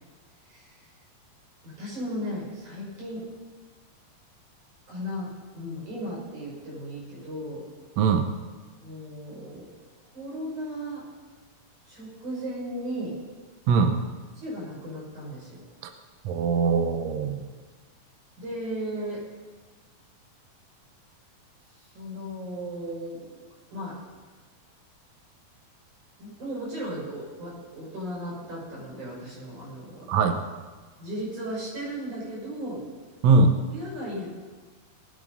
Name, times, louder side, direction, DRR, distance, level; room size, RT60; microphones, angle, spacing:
voice 1, 0.5-0.9 1.6-3.3 4.9-7.7 8.8-9.7 10.1-11.1 11.9-13.2 14.4-15.6 17.2-17.5 18.4-19.3 21.8-23.2 23.7-24.0 26.2-30.2 31.0-32.8 33.7-34.3, equal, 50° right, -5 dB, 7.2 m, -36 dB
voice 2, 8.0-8.3 13.7-14.0 16.2-17.4 30.1-30.4 33.2-33.5, right 4 dB, 75° right, 6 dB, 1.6 m, -21 dB
19.0 x 9.0 x 5.3 m, 1.4 s
omnidirectional pair, 4.3 m